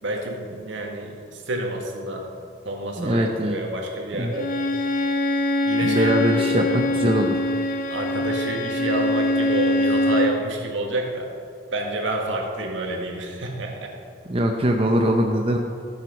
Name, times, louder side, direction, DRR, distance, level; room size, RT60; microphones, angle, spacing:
voice 1, 0.0-2.3 2.6-4.5 5.6-6.8 7.9-11.3 11.7-14.0, right 1 dB, 75° right, 1 dB, 1.9 m, -29 dB
voice 2, 3.0-3.6 4.2-4.3 5.8-7.4 14.3-15.6, equal, 30° right, 2 dB, 0.7 m, -22 dB
Bowed string instrument, 4.3-10.4, left 1 dB, 45° left, 0.6 m, -23 dB
14.5 x 7.7 x 5.3 m, 2.4 s
head